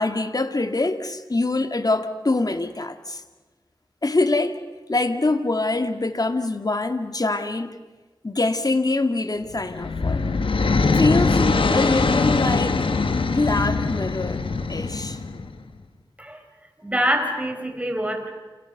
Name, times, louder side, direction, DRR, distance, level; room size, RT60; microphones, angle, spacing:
voice 1, 0.0-3.2 4.0-4.6 4.9-7.8 8.2-10.2 10.9-12.9 13.2-14.4 14.7-15.2, left 2 dB, 45° left, 8 dB, 2.2 m, -24 dB
sound 1, 9.5-15.6, left 4 dB, 85° left, 1.5 m, -22 dB
voice 2, 16.8-18.3, equal, 15° right, 5 dB, 5.1 m, -25 dB
29.0 x 28.5 x 6.8 m, 1.3 s
cardioid pair, 40°, 9 cm